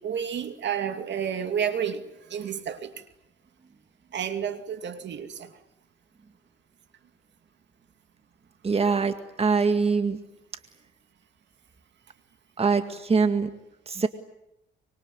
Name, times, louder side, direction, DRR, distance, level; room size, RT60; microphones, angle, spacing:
voice 1, 0.0-2.9 4.1-5.5, right 8 dB, 65° right, 2.7 m, -31 dB
voice 2, 8.6-10.2 12.6-13.5 13.9-14.1, right 4 dB, 30° right, 2.0 m, -23 dB
25.0 x 23.5 x 9.8 m
cardioid pair, 90°, 20 cm